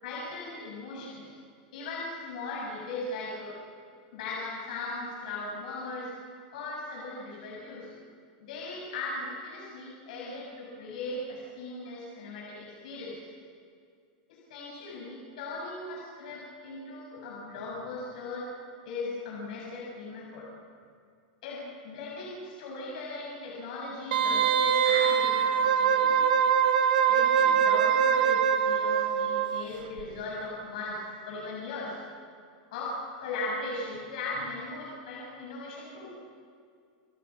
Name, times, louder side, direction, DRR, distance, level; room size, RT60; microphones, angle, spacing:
voice 1, 0.0-1.3 1.7-3.6 4.1-6.1 6.5-7.9 8.4-13.2 14.3-18.5 18.9-20.5 21.4-26.2 27.1-32.0 32.7-36.1, left 2 dB, 65° left, -4 dB, 7.6 m, -38 dB
Wind instrument woodwind instrument, 24.1-29.7 30.0-30.1, right 8 dB, 85° right, 2.2 m, -23 dB
30.0 x 27.5 x 6.1 m, 2.3 s
supercardioid pair, 170°, 5 cm